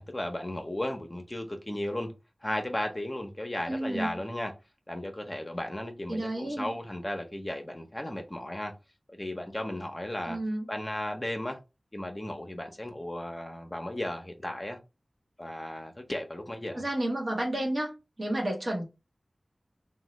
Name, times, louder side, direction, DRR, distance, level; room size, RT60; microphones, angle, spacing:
voice 1, 0.0-2.1 2.4-4.5 4.9-8.7 9.1-10.4 10.7-11.6 11.9-14.8 15.4-16.8, left 1 dB, 30° left, 0.7 m, -35 dB
voice 2, 3.7-4.1 6.1-6.7 10.2-10.7 16.7-17.9 18.2-18.8, right 1 dB, 60° right, 1.1 m, -31 dB
3.0 x 2.2 x 3.0 m
wide cardioid pair, 40°, 0 cm